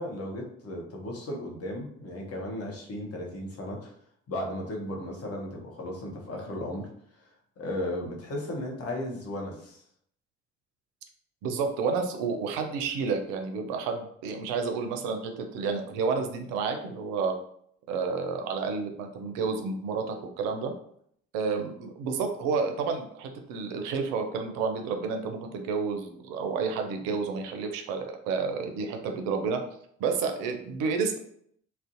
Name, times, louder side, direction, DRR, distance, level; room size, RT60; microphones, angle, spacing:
voice 1, 0.0-3.9 4.3-6.9 7.2-7.3 7.6-9.8, left 1 dB, 45° left, 0 dB, 0.8 m, -35 dB
voice 2, 11.4-17.4 17.9-20.7 21.3-29.6 30.0-31.2, right 5 dB, 70° right, 5 dB, 0.5 m, -30 dB
2.5 x 2.0 x 2.4 m, 0.66 s
hypercardioid pair, 40°, 33 cm